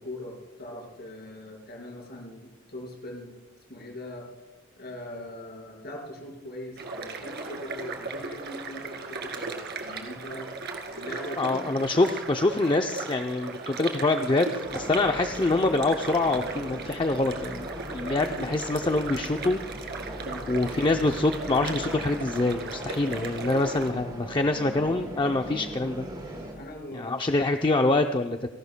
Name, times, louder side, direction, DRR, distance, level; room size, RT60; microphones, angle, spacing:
voice 1, 0.0-3.3 3.7-4.3 4.8-10.5 10.9-11.7 20.2-20.5 26.6-27.4, left 1 dB, 50° left, -1 dB, 4.8 m, -41 dB
sound 1, 6.8-23.9, right 3 dB, 55° right, 2.1 m, -37 dB
voice 2, 11.4-19.6 20.5-26.1 26.9-28.5, left 2 dB, 25° left, 5 dB, 0.5 m, -25 dB
sound 2, 14.6-26.5, right 1 dB, 20° right, 4.2 m, -40 dB
29.5 x 12.0 x 2.2 m, 1.2 s
head